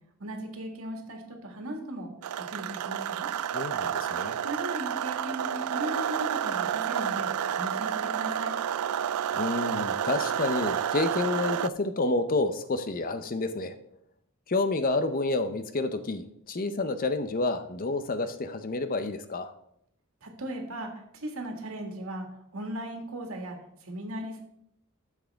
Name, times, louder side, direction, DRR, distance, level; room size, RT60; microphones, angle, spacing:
voice 1, 0.2-2.1 2.5-3.3 4.4-7.3 7.5-8.5 20.2-22.3 22.5-23.6 23.8-24.4, right 1 dB, 70° right, 3 dB, 1.9 m, -37 dB
sound 1, 2.2-11.7, right 9 dB, 90° right, 0.4 m, -30 dB
voice 2, 3.5-4.4 9.3-13.7 14.5-19.5, left 2 dB, 40° left, 10 dB, 0.6 m, -29 dB
12.5 x 7.3 x 3.5 m, 0.74 s
head